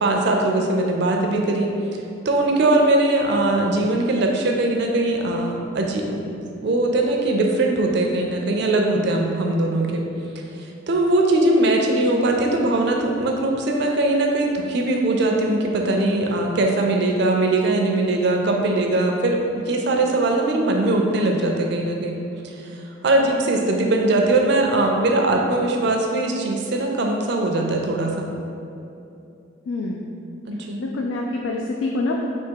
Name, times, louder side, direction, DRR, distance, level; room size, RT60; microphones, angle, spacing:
voice 1, 0.0-1.7 2.3-10.0 10.6-22.2 22.4-28.3 30.5-30.8, right 2 dB, 65° right, 1 dB, 0.5 m, -21 dB
voice 2, 29.7-30.1 30.8-32.3, left 2 dB, 85° left, 0 dB, 0.3 m, -26 dB
3.5 x 2.8 x 4.6 m, 2.7 s
head